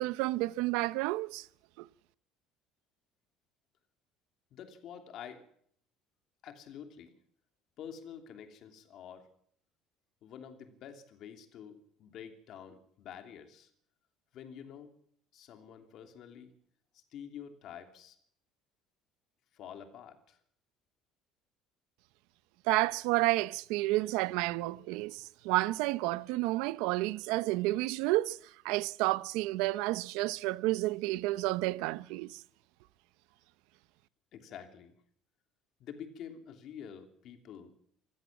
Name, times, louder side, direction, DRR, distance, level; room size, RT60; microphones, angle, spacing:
voice 1, 0.0-1.5 1.8-1.9 22.7-32.4, right 19 dB, 85° right, 0.7 m, -31 dB
voice 2, 4.5-5.4 6.4-7.1 7.8-9.3 10.2-13.7 14.3-14.9 15.3-16.5 16.9-18.2 19.5-20.4 34.3-35.0 35.8-37.7, left 8 dB, 45° left, 2.9 m, -48 dB
25.5 x 15.0 x 7.3 m
cardioid pair, 170°, 0 cm